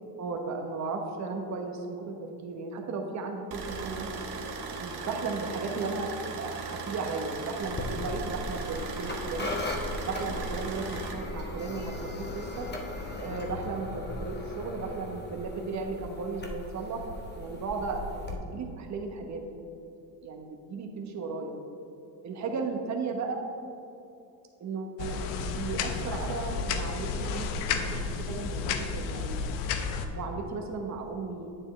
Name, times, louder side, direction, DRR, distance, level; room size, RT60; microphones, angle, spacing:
voice 1, 0.1-4.1 4.8-9.6 10.1-12.7 13.2-17.1 17.4-19.4 20.2-21.5 22.2-23.4 24.6-25.2 25.5-29.4 30.1-31.5, right 4 dB, 35° right, 2 dB, 1.1 m, -35 dB
sound 1, 3.5-11.1, right 4 dB, 55° right, 1.2 m, -38 dB
sound 2, 7.6-18.3, left 1 dB, 20° left, 1.0 m, -38 dB
sound 3, 25.0-30.1, left 5 dB, 85° left, 0.8 m, -32 dB
8.6 x 7.6 x 3.2 m, 2.7 s
supercardioid pair, 100°, 48 cm